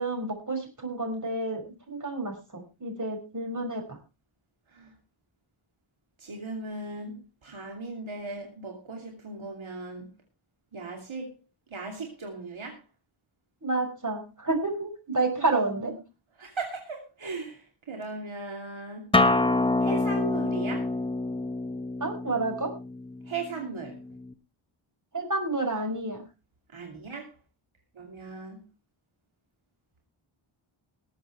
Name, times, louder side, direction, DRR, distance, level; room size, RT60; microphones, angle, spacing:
voice 1, 0.0-4.0 13.6-15.9 22.0-22.7 25.1-26.2, right 2 dB, 35° right, 3 dB, 5.6 m, -30 dB
voice 2, 6.2-10.1 10.7-11.3 11.7-12.8 15.4-15.5 16.4-19.1 19.8-20.9 23.3-24.0 26.7-27.3 28.0-28.6, right 3 dB, 70° right, 2 dB, 2.8 m, -37 dB
Acoustic guitar, 19.1-24.3, left 2 dB, 10° left, 1.1 m, -27 dB
20.0 x 8.0 x 4.5 m, 0.30 s
wide cardioid pair, 110°, 50 cm